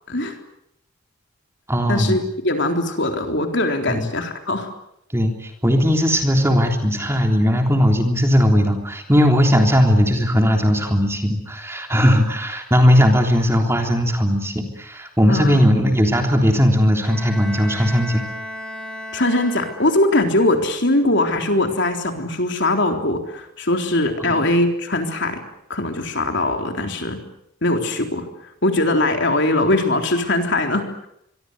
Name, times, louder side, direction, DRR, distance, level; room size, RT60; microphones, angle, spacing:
voice 1, 0.1-0.4 1.9-4.7 15.3-15.6 19.1-25.4 25.7-27.2 27.6-28.2 28.6-31.1, left 2 dB, 55° left, 4 dB, 3.8 m, -21 dB
voice 2, 1.7-2.2 3.9-4.1 5.1-18.2 24.2-24.5, equal, 10° right, 3 dB, 3.4 m, -18 dB
Bowed string instrument, 17.0-20.3, equal, 5° left, 4.9 m, -34 dB
26.0 x 23.5 x 8.1 m, 0.76 s
head